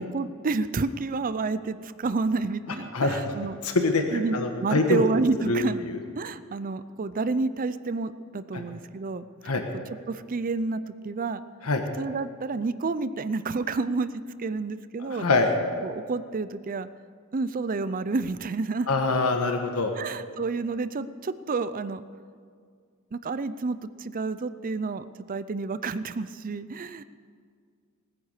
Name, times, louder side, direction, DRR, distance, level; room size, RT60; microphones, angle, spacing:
voice 1, 0.0-3.5 4.1-5.8 6.2-9.3 10.1-11.4 12.0-15.3 15.8-16.9 17.3-18.9 19.9-22.0 23.1-27.0, right 3 dB, 40° right, 14 dB, 0.5 m, -29 dB
voice 2, 3.6-5.0 5.5-6.0 8.5-8.6 9.4-9.6 11.6-11.8 15.0-15.5 18.9-19.9, left 3 dB, 75° left, 4 dB, 1.3 m, -24 dB
19.5 x 9.7 x 6.6 m, 2.1 s
head